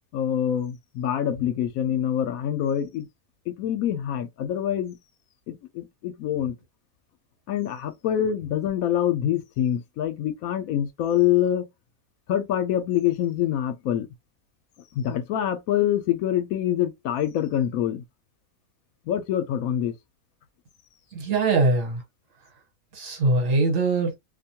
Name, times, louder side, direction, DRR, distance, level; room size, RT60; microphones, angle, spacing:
voice 1, 0.1-3.1 3.5-5.0 5.5-6.6 7.5-11.7 12.3-14.1 14.9-18.0 19.1-19.9, left 10 dB, 75° left, 1.0 m, -25 dB
voice 2, 21.1-22.0 22.9-24.1, right 3 dB, 65° right, 1.4 m, -22 dB
2.6 x 2.2 x 2.8 m
omnidirectional pair, 1.5 m